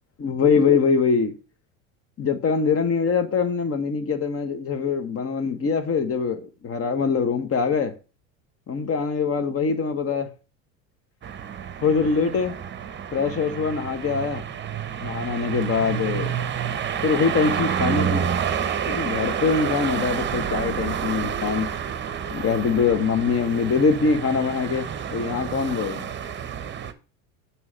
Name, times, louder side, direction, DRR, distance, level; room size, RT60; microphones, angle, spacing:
voice 1, 0.2-1.3 2.2-7.9 8.7-10.3 11.8-12.5 13.1-14.4 15.0-16.3 17.0-18.2 18.9-21.7 22.3-26.1, left 5 dB, 35° left, 1.1 m, -23 dB
sound 1, 11.2-26.9, right 8 dB, 25° right, 0.9 m, -29 dB
9.5 x 3.3 x 6.2 m
hypercardioid pair, 90°, 40 cm